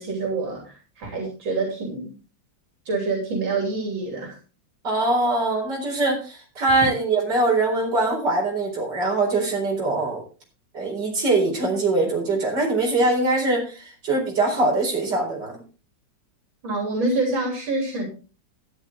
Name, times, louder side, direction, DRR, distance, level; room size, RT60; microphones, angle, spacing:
voice 1, 0.0-2.1 2.9-4.4 16.6-18.1, right 3 dB, 90° right, 1 dB, 3.9 m, -26 dB
voice 2, 4.8-10.2 10.7-15.6, right 2 dB, 60° right, -1 dB, 4.9 m, -22 dB
12.5 x 10.0 x 3.6 m, 0.34 s
omnidirectional pair, 2.1 m